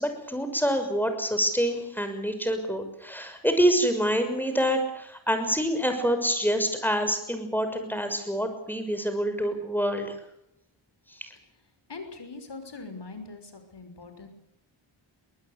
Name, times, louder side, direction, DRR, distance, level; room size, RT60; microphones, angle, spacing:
voice 1, 0.0-10.1 11.2-11.3, equal, 5° left, 7 dB, 6.0 m, -26 dB
voice 2, 11.9-14.3, left 3 dB, 55° left, 8 dB, 5.8 m, -42 dB
23.0 x 20.0 x 8.4 m, 0.80 s
cardioid pair, 70°, 48 cm